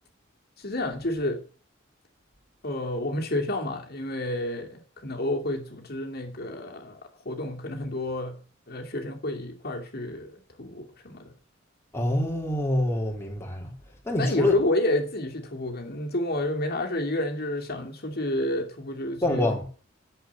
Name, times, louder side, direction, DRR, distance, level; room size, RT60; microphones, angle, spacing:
voice 1, 0.6-1.4 2.6-7.0 7.2-8.4 8.7-11.3 14.2-19.5, left 1 dB, 50° left, 2.6 m, -30 dB
voice 2, 11.9-13.7 14.1-14.6 19.2-19.7, left 1 dB, 15° left, 3.0 m, -25 dB
11.5 x 8.1 x 7.0 m
head